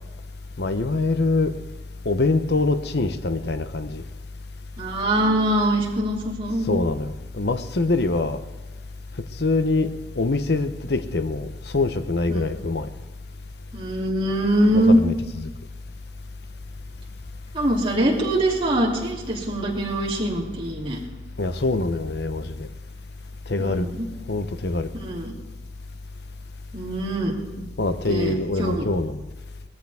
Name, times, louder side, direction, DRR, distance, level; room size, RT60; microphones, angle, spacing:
voice 1, 0.6-1.5 2.0-4.0 6.7-8.4 9.4-12.9 14.9-15.1 15.4-15.5 21.4-22.7 23.5-23.9 24.3-24.9 27.8-29.2, left 3 dB, 60° left, 10 dB, 0.9 m, -24 dB
voice 2, 4.8-6.8 12.3-12.5 13.7-15.0 17.5-21.0 23.6-24.1 24.9-25.3 26.7-27.7 28.1-28.8, right 1 dB, 30° right, -4 dB, 2.9 m, -23 dB
20.0 x 14.0 x 3.6 m, 1.2 s
head